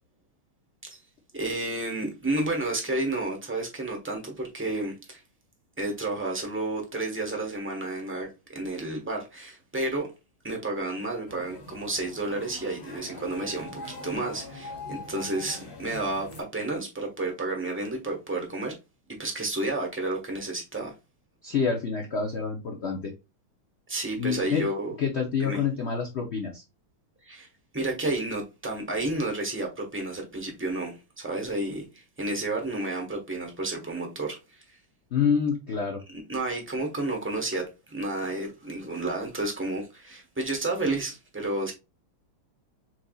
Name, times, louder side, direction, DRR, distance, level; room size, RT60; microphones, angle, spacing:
voice 1, 1.3-5.2 5.8-10.1 10.4-18.8 19.2-20.9 23.9-24.9 25.4-25.6 27.2-27.5 27.7-34.8 36.1-41.7, right 2 dB, 10° right, 0.7 m, -31 dB
sound 1, 11.3-16.4, left 2 dB, 35° left, 1.4 m, -42 dB
voice 2, 21.4-23.1 24.2-24.6 25.0-26.6 35.1-36.0, left 6 dB, 65° left, 0.6 m, -27 dB
4.6 x 4.0 x 2.3 m
omnidirectional pair, 2.3 m